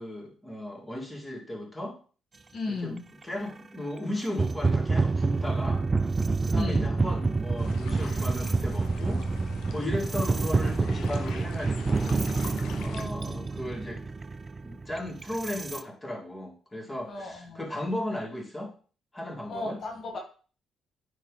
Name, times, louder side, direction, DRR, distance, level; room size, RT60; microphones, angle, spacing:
voice 1, 0.0-2.0 2.7-5.9 6.4-9.2 9.7-12.3 12.8-14.0 14.6-18.7 19.1-19.8, left 1 dB, 15° left, 0 dB, 2.1 m, -36 dB
voice 2, 2.5-3.0 6.6-6.9 17.1-17.6 19.5-20.2, left 3 dB, 55° left, 1 dB, 1.5 m, -34 dB
sound 1, 3.2-3.3 4.2-15.8, right 3 dB, 30° right, 0.3 m, -28 dB
sound 2, 7.6-13.0, left 6 dB, 80° left, 0.8 m, -44 dB
9.5 x 3.3 x 3.8 m, 0.38 s
cardioid pair, 90°, 0 cm